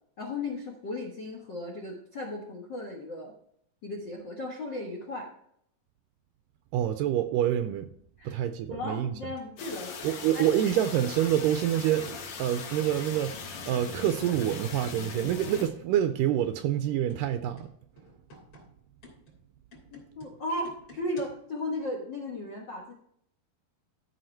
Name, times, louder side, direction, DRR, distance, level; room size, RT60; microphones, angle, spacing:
voice 1, 0.2-3.3 3.8-5.3 8.2-8.4 8.7-10.7 19.9-22.9, left 2 dB, 75° left, 1.0 m, -36 dB
voice 2, 6.7-7.9 8.2-9.1 10.0-17.7, right 11 dB, 85° right, 1.9 m, -27 dB
sound 1, 9.4-9.5 10.8-11.1 11.7-12.0 12.7-13.1 13.7-14.2 14.7-15.2 15.8-16.3 16.8-21.5, right 1 dB, 40° left, 3.7 m, -55 dB
sound 2, 9.6-15.7, left 5 dB, 60° left, 2.0 m, -40 dB
14.5 x 4.9 x 4.4 m
omnidirectional pair, 4.4 m